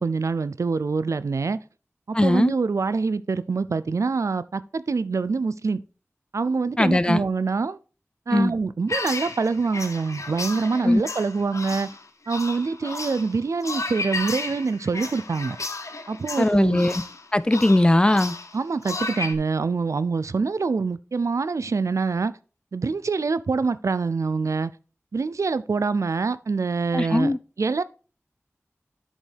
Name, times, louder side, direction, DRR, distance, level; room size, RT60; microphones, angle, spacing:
voice 1, 0.0-1.6 2.1-5.8 6.3-7.8 8.3-11.9 12.3-15.6 16.1-16.9 18.5-22.3 22.7-24.7 25.1-27.8, right 4 dB, 90° right, 0.4 m, -25 dB
voice 2, 2.1-2.5 6.8-7.2 8.3-8.5 10.8-11.0 16.4-17.0 17.3-18.3 26.9-27.4, left 1 dB, 20° left, 0.3 m, -19 dB
sound 1, 8.9-19.3, left 3 dB, 85° left, 0.7 m, -33 dB
10.5 x 5.2 x 3.4 m
wide cardioid pair, 55°, 5 cm